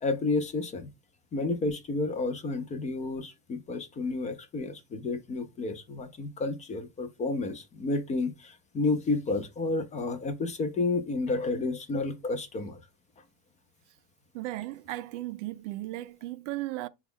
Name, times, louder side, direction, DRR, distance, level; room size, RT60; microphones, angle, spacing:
voice 1, 0.0-0.9 1.3-12.8, left 3 dB, 20° left, 0.5 m, -31 dB
voice 2, 14.3-16.9, right 17 dB, 85° right, 0.5 m, -36 dB
5.0 x 2.3 x 3.5 m
supercardioid pair, 140°, 36 cm